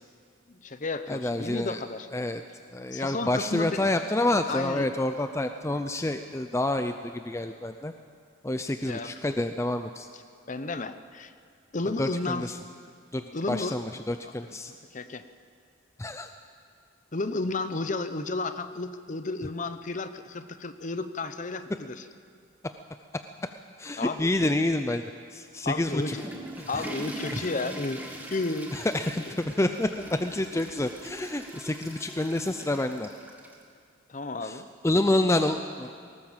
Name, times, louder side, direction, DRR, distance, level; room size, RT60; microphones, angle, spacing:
voice 1, 0.5-2.1 2.9-3.9 4.5-4.9 8.9-9.1 10.1-10.2 10.5-11.3 11.7-12.5 13.3-13.8 14.2-14.3 14.7-15.2 17.1-22.1 24.0-24.5 25.6-26.3 26.7-28.0 28.3-28.7 29.2-29.3 34.1-34.7, left 3 dB, 40° left, 10 dB, 0.8 m, -32 dB
voice 2, 1.1-1.8 2.1-2.4 2.7-7.9 8.4-10.1 12.0-12.5 13.1-13.2 13.5-14.7 16.0-16.3 23.8-25.0 25.3-26.2 27.3-27.4 28.7-33.1 34.4-35.9, left 1 dB, 15° left, 8 dB, 0.5 m, -28 dB
Water / Toilet flush, 25.8-33.6, right 1 dB, 10° right, 2.0 m, -41 dB
19.0 x 18.5 x 7.4 m, 2.3 s
head